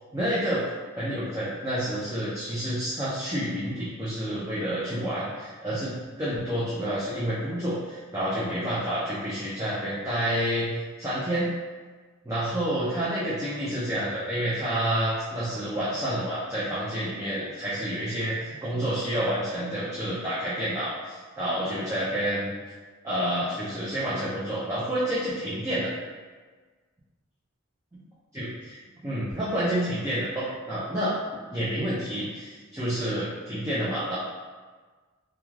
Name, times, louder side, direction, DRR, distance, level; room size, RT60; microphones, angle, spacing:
voice 1, 0.1-0.6 1.0-10.7 11.0-11.5 12.2-22.5 23.0-25.9 28.3-31.1 31.5-34.2, right 1 dB, 15° right, -10 dB, 0.4 m, -29 dB
2.3 x 2.3 x 3.1 m, 1.4 s
head